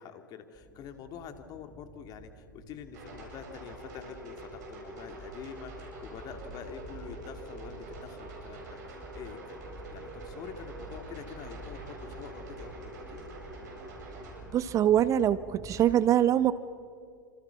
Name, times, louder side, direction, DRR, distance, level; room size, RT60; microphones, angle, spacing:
voice 1, 0.0-13.3, left 7 dB, 40° left, 7 dB, 2.7 m, -46 dB
sound 1, 0.6-16.0, right 1 dB, 5° right, 3.7 m, -49 dB
sound 2, 2.9-14.4, right 2 dB, 60° right, 7.9 m, -46 dB
sound 3, 8.5-14.0, right 2 dB, 90° right, 2.7 m, -54 dB
voice 2, 14.5-16.5, right 11 dB, 30° right, 15 dB, 0.9 m, -24 dB
29.5 x 27.0 x 5.9 m, 2.1 s
figure-of-eight pair, 95°, 11 cm